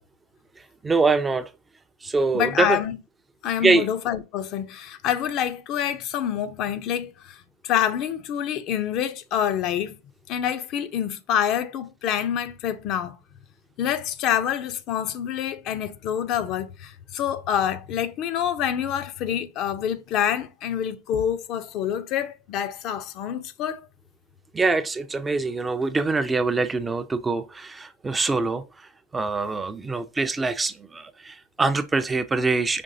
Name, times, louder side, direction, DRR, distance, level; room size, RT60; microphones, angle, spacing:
voice 1, 0.8-1.5 2.0-2.8 3.6-3.9 24.5-32.8, right 3 dB, 15° right, 0.4 m, -24 dB
voice 2, 2.3-3.0 3.4-10.0 10.3-13.2 13.8-23.9, left 9 dB, 45° left, 0.5 m, -27 dB
5.2 x 3.0 x 2.6 m
hypercardioid pair, 110°, 0 cm